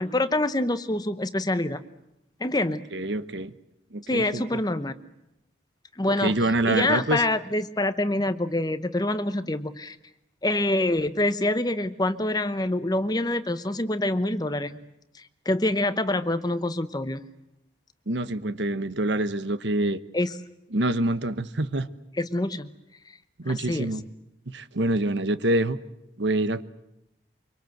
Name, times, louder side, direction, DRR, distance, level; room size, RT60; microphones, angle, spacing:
voice 1, 0.0-1.8 2.4-2.8 4.1-4.9 6.0-6.4 6.7-10.0 10.4-14.8 15.1-17.2 20.1-20.3 22.2-22.7 23.4-24.0, left 1 dB, 20° left, 12 dB, 0.9 m, -26 dB
voice 2, 2.9-3.5 3.9-4.6 6.1-7.2 18.1-20.0 20.7-21.9 23.4-24.0 24.5-25.8 26.2-26.6, right 1 dB, 70° right, 14 dB, 1.1 m, -26 dB
25.0 x 24.0 x 7.9 m, 0.86 s
head